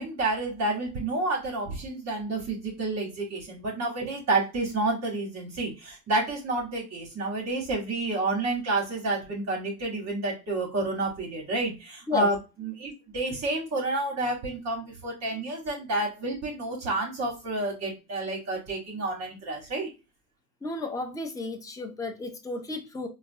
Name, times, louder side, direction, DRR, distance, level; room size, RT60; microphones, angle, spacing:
voice 1, 0.0-19.9, right 2 dB, 35° right, -2 dB, 1.1 m, -29 dB
voice 2, 20.6-23.1, left 3 dB, 10° left, 5 dB, 0.4 m, -33 dB
3.9 x 2.0 x 2.6 m, 0.27 s
supercardioid pair, 105°, 46 cm